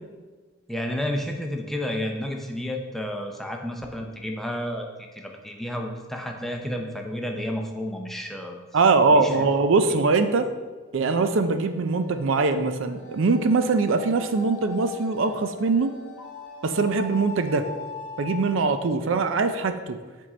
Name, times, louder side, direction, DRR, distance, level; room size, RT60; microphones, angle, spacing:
voice 1, 0.7-4.9 5.1-8.6 9.1-9.4, left 1 dB, ahead, 2 dB, 0.5 m, -31 dB
voice 2, 8.7-10.5 10.9-15.9 16.6-17.7 18.2-20.0, right 4 dB, 70° right, 8 dB, 0.4 m, -22 dB
sound 1, 11.5-19.1, left 3 dB, 80° left, 1.0 m, -41 dB
7.6 x 3.7 x 4.2 m, 1.4 s
head